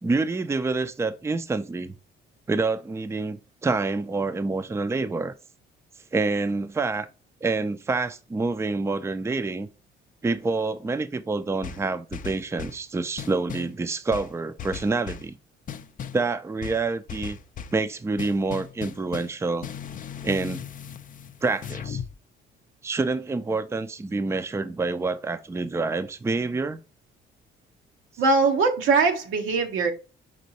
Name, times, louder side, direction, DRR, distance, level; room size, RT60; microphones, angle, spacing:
voice 1, 0.0-1.9 2.5-5.3 6.1-7.1 7.4-9.7 10.2-15.4 16.1-17.4 17.7-19.7 20.2-20.6 21.4-22.0 22.8-26.8, right 3 dB, 15° right, 0.4 m, -27 dB
sound 1, 11.6-12.8 13.2-13.8 14.1-15.3 15.7-16.2 16.6-17.8 18.2-22.1, left 7 dB, 45° left, 0.4 m, -37 dB
voice 2, 28.2-29.9, right 4 dB, 90° right, 1.0 m, -21 dB
5.3 x 3.0 x 2.8 m
cardioid pair, 90°, 20 cm